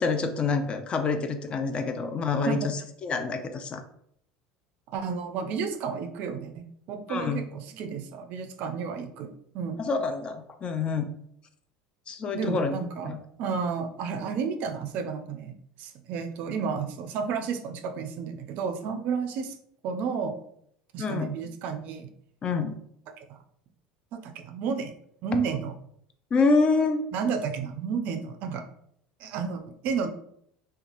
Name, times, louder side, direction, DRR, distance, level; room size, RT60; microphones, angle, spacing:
voice 1, 0.0-3.8 7.1-7.4 9.8-11.1 12.1-12.7 13.0-13.2 21.0-21.3 22.4-22.8 26.3-27.0, left 4 dB, 35° left, 8 dB, 0.4 m, -27 dB
voice 2, 4.9-9.8 12.3-19.5 19.8-20.4 20.9-22.1 23.3-23.4 24.1-24.9 25.2-25.7 27.1-28.6 29.2-30.1, right 6 dB, 60° right, 6 dB, 0.4 m, -32 dB
2.8 x 2.2 x 2.6 m, 0.69 s
supercardioid pair, 95°, 3 cm